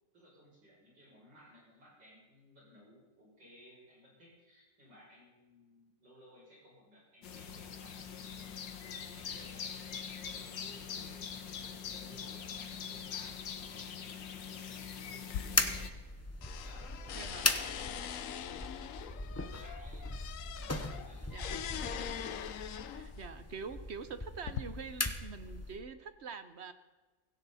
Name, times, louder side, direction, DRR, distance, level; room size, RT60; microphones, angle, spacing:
voice 1, 0.1-8.6 9.1-10.0 10.3-22.0, equal, 80° right, -5 dB, 7.8 m, -59 dB
sound 1, 7.2-15.9, left 7 dB, 90° left, 2.0 m, -43 dB
sound 2, 15.2-16.1 16.4-23.2 24.0-24.6, left 9 dB, 60° left, 0.9 m, -42 dB
sound 3, 15.5-25.8, left 2 dB, 15° left, 0.6 m, -38 dB
voice 2, 17.1-17.5 21.3-21.5 22.9-26.7, right 5 dB, 50° right, 11 dB, 0.9 m, -45 dB
17.0 x 16.5 x 4.2 m, 1.3 s
omnidirectional pair, 1.9 m